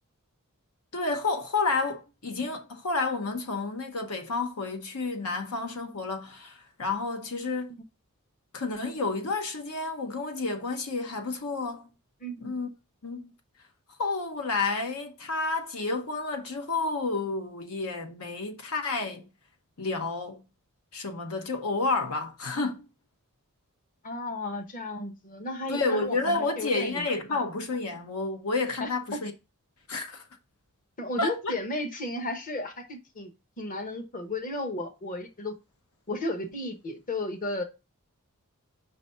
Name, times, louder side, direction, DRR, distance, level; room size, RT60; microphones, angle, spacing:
voice 1, 0.9-7.7 8.5-11.9 12.4-12.7 13.0-13.3 14.0-19.3 19.8-20.4 20.9-22.9 25.7-29.3 29.9-30.2 31.2-31.5, left 3 dB, 75° left, 0.9 m, -30 dB
voice 2, 12.2-12.5 24.0-27.0 27.3-27.4 28.8-29.2 31.0-33.3 33.6-35.5 36.1-37.6, left 2 dB, 40° left, 1.1 m, -34 dB
5.4 x 4.0 x 5.5 m
head